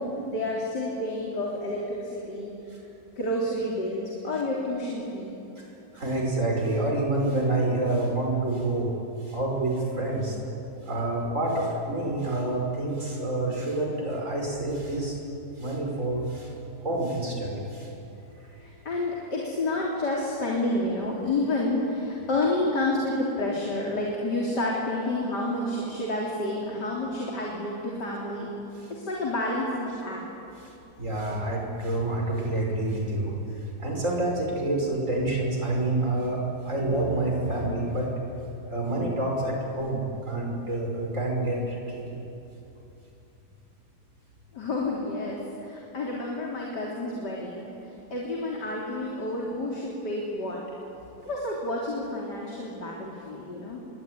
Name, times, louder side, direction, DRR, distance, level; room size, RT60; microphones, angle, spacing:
voice 1, 0.0-2.5 3.2-5.4 18.3-28.5 28.9-30.2 44.5-50.6 51.2-53.8, left 2 dB, 85° left, -3 dB, 4.1 m, -29 dB
voice 2, 5.9-8.9 9.2-10.4 10.8-15.2 15.6-16.5 16.8-17.9 28.8-28.9 30.6-38.1 38.4-42.2, right 2 dB, 50° right, 0 dB, 6.0 m, -28 dB
27.0 x 23.5 x 9.5 m, 2.9 s
omnidirectional pair, 1.8 m